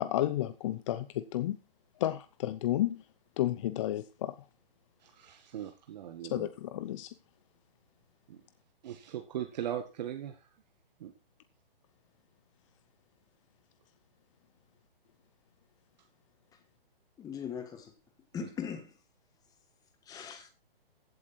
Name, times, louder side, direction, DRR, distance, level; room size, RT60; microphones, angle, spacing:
voice 1, 0.0-1.6 2.0-3.0 3.4-4.3 6.3-7.1 20.1-20.3, left 13 dB, 30° left, 0.8 m, -32 dB
voice 2, 5.0-6.5 8.3-8.4 8.8-10.4 11.0-11.1 18.4-18.5, right 10 dB, 45° right, 1.8 m, -39 dB
voice 3, 17.2-17.9 18.3-18.9 20.0-20.5, left 7 dB, 10° left, 1.8 m, -39 dB
15.5 x 8.3 x 4.3 m
hypercardioid pair, 150°, 30 cm